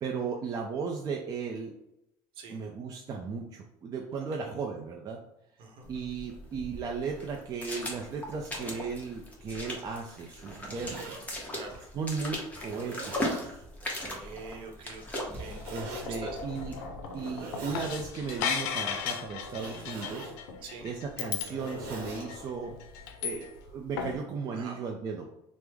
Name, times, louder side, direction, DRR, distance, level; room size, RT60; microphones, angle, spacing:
voice 1, 0.0-1.7 2.5-5.2 5.9-11.3 11.9-13.1 13.4-13.6 15.7-16.8 17.1-20.3 20.8-22.7 23.2-25.3, right 5 dB, 35° right, 1 dB, 0.4 m, -36 dB
sound 1, 5.8-16.9, left 1 dB, 15° left, 0.8 m, -39 dB
Zipper (clothing), 10.3-11.2 11.9-12.0 12.6-13.5 15.3-16.0 17.1-18.0 19.4-20.4 21.2-22.3, right 3 dB, 85° right, 1.0 m, -43 dB
voice 2, 11.5-11.8 14.0-16.4 20.6-20.9 24.5-24.8, right 4 dB, 55° right, 2 dB, 0.8 m, -45 dB
sound 2, 15.4-23.7 24.0-24.2, left 7 dB, 85° left, 0.4 m, -36 dB
3.1 x 2.0 x 3.4 m, 0.83 s
cardioid pair, 120°, 11 cm